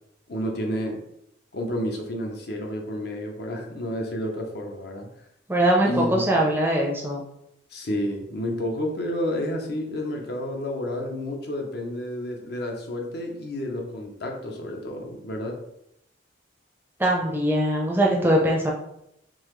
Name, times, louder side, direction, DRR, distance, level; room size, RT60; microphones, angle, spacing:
voice 1, 0.3-1.0 1.5-5.1 5.9-6.4 7.7-15.6, left 1 dB, 55° left, 2 dB, 0.6 m, -30 dB
voice 2, 5.5-7.2 17.0-18.7, right 1 dB, 10° right, -1 dB, 0.5 m, -21 dB
3.9 x 2.8 x 3.0 m, 0.79 s
head